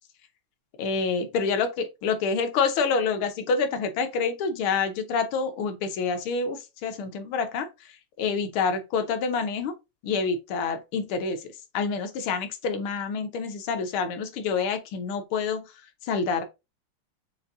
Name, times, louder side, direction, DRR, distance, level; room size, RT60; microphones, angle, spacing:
voice 1, 0.8-9.7 10.0-11.5 11.7-15.6 16.0-16.5, left 5 dB, 75° left, 1.5 m, -27 dB
6.6 x 2.6 x 2.5 m
omnidirectional pair, 2.4 m